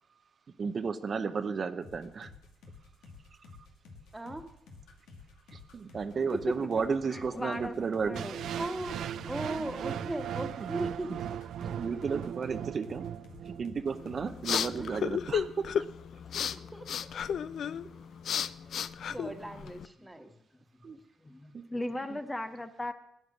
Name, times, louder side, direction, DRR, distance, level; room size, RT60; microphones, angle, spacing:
voice 1, 0.6-2.3 3.3-3.5 5.5-8.3 10.6-10.7 11.1-11.2 11.6-13.1 13.4-15.7 19.0-19.1 20.8-21.0 21.5-21.6 21.9-22.2, right 5 dB, 45° right, 0.7 m, -33 dB
sound 1, 1.8-14.4 14.7-14.9, left 4 dB, 90° left, 2.2 m, -52 dB
voice 2, 4.1-4.5 8.6-11.2 14.8-14.9 16.7-17.1 17.6-17.7 18.7-20.3, right 1 dB, 10° right, 1.6 m, -38 dB
voice 3, 7.1-7.7 8.1-8.4 16.3-16.7 17.4-17.5 21.2-22.9, left 1 dB, 15° left, 0.7 m, -37 dB
sound 2, 8.1-14.2, right 9 dB, 70° right, 0.4 m, -38 dB
sound 3, 13.9-19.9, left 8 dB, 65° left, 0.5 m, -34 dB
12.0 x 9.5 x 6.2 m
cardioid pair, 90°, 0 cm